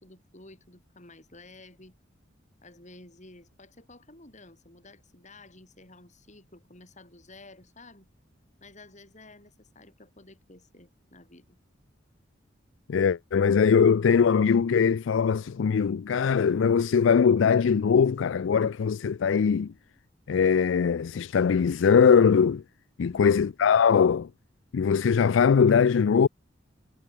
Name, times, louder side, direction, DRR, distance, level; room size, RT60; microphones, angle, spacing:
voice 1, 0.0-2.0 2.6-8.1 8.6-11.6 23.0-23.4, left 2 dB, 40° left, 7.2 m, -52 dB
voice 2, 12.9-19.7 20.3-22.6 23.0-24.3 24.7-26.3, left 6 dB, 85° left, 0.4 m, -21 dB
head